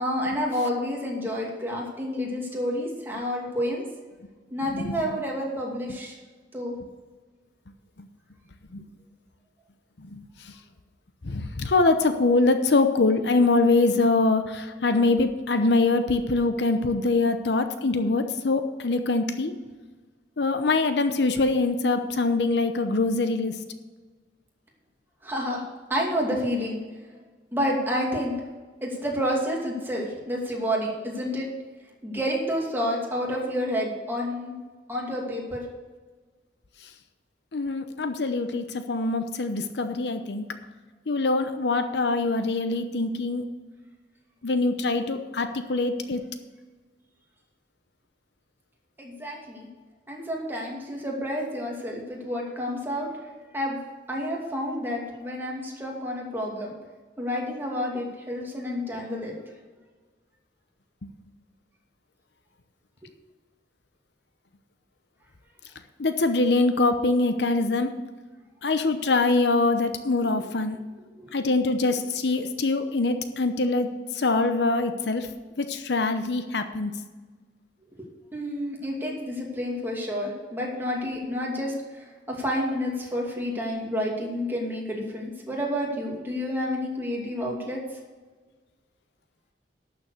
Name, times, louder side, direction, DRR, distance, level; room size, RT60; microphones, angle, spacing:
voice 1, 0.0-3.8 4.5-6.2 6.5-6.7 25.2-26.8 27.5-28.3 28.8-31.5 32.0-34.5 34.9-35.6 49.0-49.7 50.1-53.1 53.5-53.8 54.1-56.7 57.2-59.3 71.2-71.3 78.0-87.8, equal, 15° right, -2 dB, 2.5 m, -29 dB
voice 2, 10.0-10.5 11.2-19.5 20.4-23.6 37.5-40.5 41.1-43.5 44.4-46.2 66.0-68.0 68.6-70.9 71.3-75.3 75.6-77.0, left 3 dB, 70° left, 8 dB, 0.8 m, -24 dB
12.0 x 6.9 x 6.6 m, 1.3 s
head